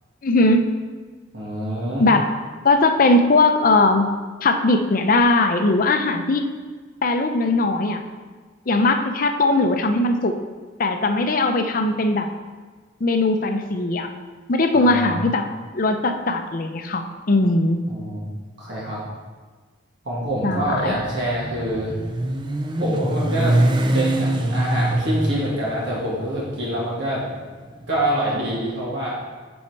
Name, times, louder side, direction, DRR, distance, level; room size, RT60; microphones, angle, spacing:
voice 1, 0.2-0.6 2.0-2.3 2.6-4.1 4.4-6.5 7.0-8.0 8.7-10.4 10.8-12.3 13.0-14.1 14.5-15.5 15.7-17.8 20.4-20.9, left 2 dB, 45° left, 6 dB, 0.6 m, -19 dB
voice 2, 1.3-2.1 14.7-15.3 17.9-18.3 18.6-19.0 20.0-22.0 22.8-23.6 23.9-27.2 27.9-29.2, right 1 dB, 60° right, -6 dB, 1.6 m, -26 dB
Motorcycle, 20.3-28.5, right 1 dB, 25° right, 0.5 m, -24 dB
6.4 x 5.7 x 4.6 m, 1.5 s
head